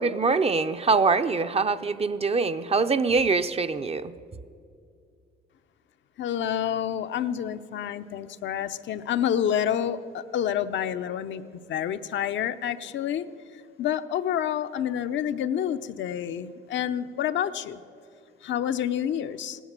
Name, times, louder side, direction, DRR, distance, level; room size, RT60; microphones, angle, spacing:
voice 1, 0.0-4.1, right 4 dB, 30° right, 11 dB, 0.6 m, -24 dB
voice 2, 6.2-11.4 11.7-13.2 13.8-17.8 18.4-19.6, left 9 dB, 70° left, 9 dB, 0.7 m, -28 dB
17.5 x 11.0 x 7.5 m, 2.4 s
cardioid pair, 90°, 20 cm